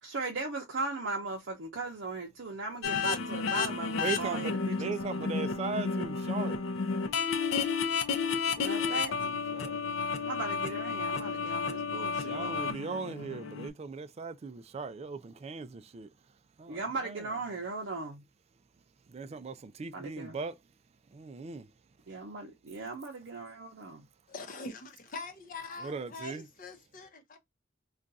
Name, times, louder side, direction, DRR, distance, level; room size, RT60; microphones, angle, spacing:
voice 1, 0.0-4.9 5.2-5.4 8.6-9.1 10.2-12.8 16.7-18.2 19.9-20.4 22.1-24.0, right 3 dB, 70° right, 0.6 m, -38 dB
sound 1, 2.8-13.7, left 5 dB, 85° left, 0.5 m, -32 dB
voice 2, 4.0-6.6 8.3-9.8 12.2-16.1 16.6-17.3 19.1-20.6 21.1-21.7 25.8-26.5, right 4 dB, 35° right, 0.3 m, -39 dB
voice 3, 24.3-27.4, left 3 dB, 45° left, 0.7 m, -43 dB
2.4 x 2.3 x 3.9 m
head